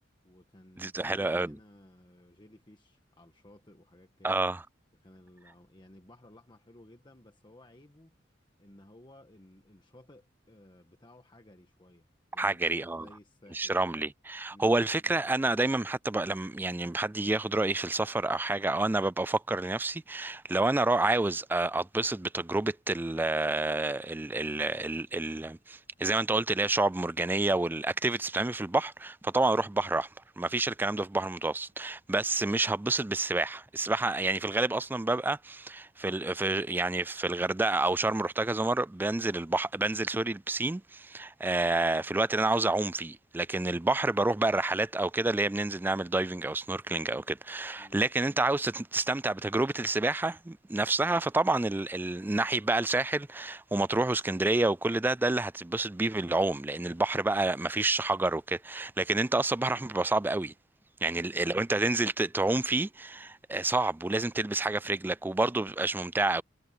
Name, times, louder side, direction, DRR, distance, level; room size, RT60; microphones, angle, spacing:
voice 1, 0.2-4.4 4.9-8.1 8.6-12.7 12.9-13.9 14.5-14.8 47.8-48.0, left 1 dB, 25° left, 1.4 m, -56 dB
voice 2, 0.8-1.6 4.2-4.6 12.4-13.1 13.5-30.1 30.4-60.5 61.0-66.4, right 2 dB, 10° right, 0.3 m, -29 dB
head